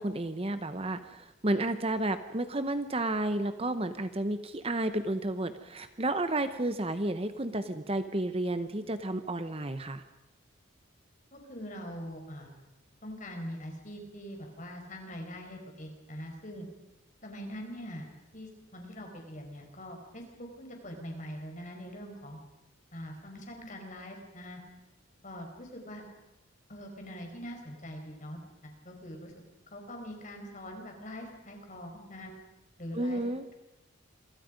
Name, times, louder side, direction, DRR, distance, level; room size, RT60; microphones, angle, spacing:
voice 1, 0.0-10.0 32.9-33.4, right 1 dB, 30° right, 10 dB, 1.0 m, -31 dB
voice 2, 11.3-12.5 13.0-16.6 17.2-18.1 18.3-22.4 22.9-24.6 25.2-26.0 26.7-29.3 29.7-32.3 32.8-33.2, equal, 40° left, 3 dB, 5.1 m, -43 dB
28.0 x 23.5 x 5.3 m, 1.0 s
head